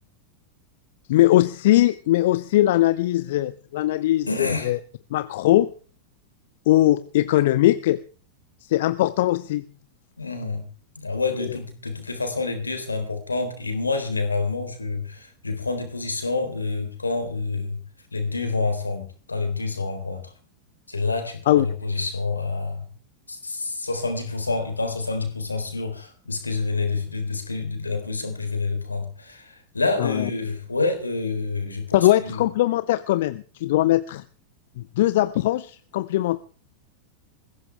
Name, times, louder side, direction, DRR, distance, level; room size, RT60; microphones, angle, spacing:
voice 1, 1.1-4.8 5.1-5.7 6.7-8.0 8.6-9.6 21.5-21.6 30.0-30.3 31.9-34.2 34.8-36.4, left 15 dB, 55° left, 0.7 m, -20 dB
voice 2, 4.3-4.7 10.2-10.7 11.0-17.8 18.1-20.3 20.9-22.9 23.3-32.4, left 3 dB, 80° left, 3.8 m, -28 dB
21.5 x 16.0 x 3.5 m
figure-of-eight pair, 90°, 0 cm